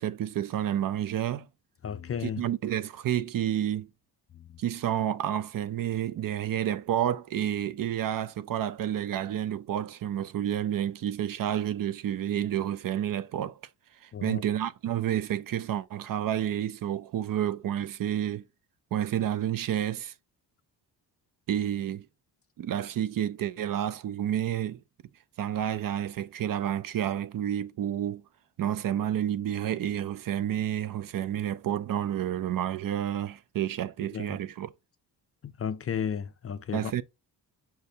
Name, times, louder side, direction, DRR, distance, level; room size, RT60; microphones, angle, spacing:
voice 1, 0.0-1.5 2.2-3.9 4.6-13.6 14.0-18.4 18.9-20.1 21.5-22.1 22.6-24.8 25.4-28.2 28.6-34.7 36.7-37.0, right 10 dB, 55° right, 0.5 m, -30 dB
voice 2, 1.8-2.4 4.3-4.4 14.1-14.4 34.1-34.4 35.4-36.9, left 7 dB, 35° left, 0.4 m, -33 dB
5.8 x 2.6 x 3.3 m
cardioid pair, 85°, 42 cm